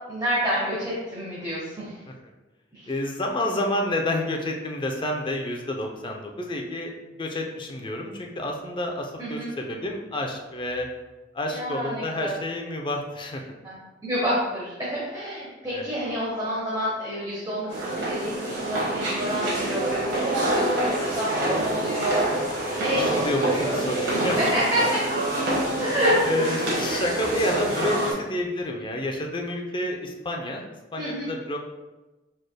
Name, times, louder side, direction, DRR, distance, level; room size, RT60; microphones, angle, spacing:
voice 1, 0.1-2.0 2.7-2.9 9.2-9.5 11.5-12.4 13.6-22.3 22.8-23.8 24.3-25.0 25.8-26.3 31.0-31.3, equal, 20° right, -7 dB, 1.0 m, -28 dB
voice 2, 2.9-6.9 7.2-10.9 11.3-13.5 15.7-15.9 21.3-21.6 22.7-24.5 25.7-25.8 26.2-30.6 30.9-31.6, left 1 dB, 25° left, 1 dB, 0.6 m, -29 dB
sound 1, 17.7-28.1, right 1 dB, 90° right, 1.4 m, -26 dB
5.0 x 4.2 x 2.2 m, 1.1 s
head